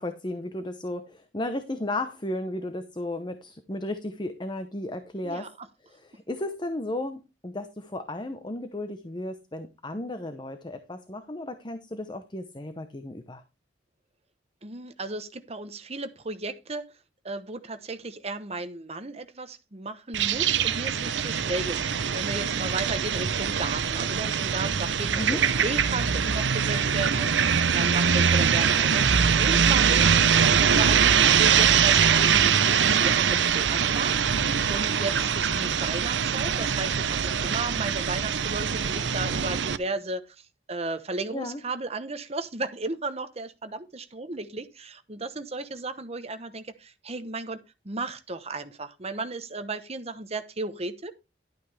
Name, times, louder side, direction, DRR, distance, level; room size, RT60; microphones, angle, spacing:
voice 1, 0.0-5.5 5.9-13.4 25.2-25.4 41.3-41.6, left 1 dB, 25° left, 0.8 m, -34 dB
voice 2, 5.2-5.7 14.6-16.9 17.2-34.4 34.7-51.1, right 2 dB, 35° right, 1.0 m, -35 dB
sound 1, 20.1-39.8, right 7 dB, 75° right, 0.7 m, -23 dB
12.0 x 8.3 x 3.4 m
head